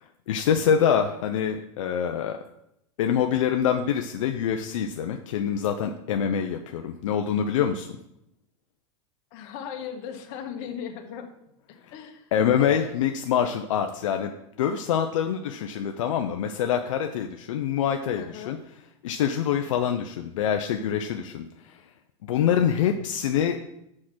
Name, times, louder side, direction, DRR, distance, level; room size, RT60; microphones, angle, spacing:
voice 1, 0.3-2.4 3.0-7.9 12.3-14.3 14.6-18.6 19.0-21.4 22.2-23.6, left 8 dB, 85° left, 5 dB, 0.6 m, -25 dB
voice 2, 9.3-11.3 11.7-12.2 12.5-12.9 18.1-18.6, left 8 dB, 55° left, 5 dB, 1.4 m, -37 dB
6.4 x 4.9 x 6.0 m, 0.80 s
supercardioid pair, 125°, 16 cm